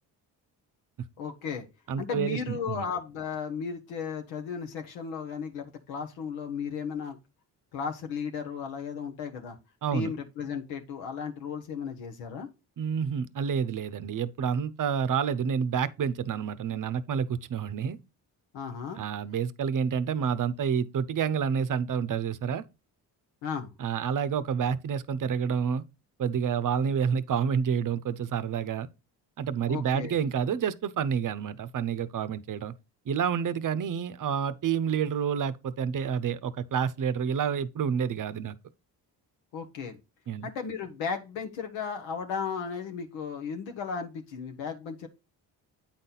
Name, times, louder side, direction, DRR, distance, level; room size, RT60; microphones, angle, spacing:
voice 1, 1.2-1.7 2.0-7.2 7.7-9.6 9.9-12.5 18.5-19.0 23.4-23.7 29.7-30.2 39.5-40.0 40.4-45.1, left 6 dB, 90° left, 1.0 m, -35 dB
voice 2, 1.9-2.8 9.8-10.1 12.8-18.0 19.0-22.6 23.8-25.8 26.2-28.9 29.4-32.7 33.1-38.6 40.3-40.5, right 7 dB, 45° right, 0.7 m, -29 dB
8.6 x 4.1 x 3.9 m
supercardioid pair, 60°, 44 cm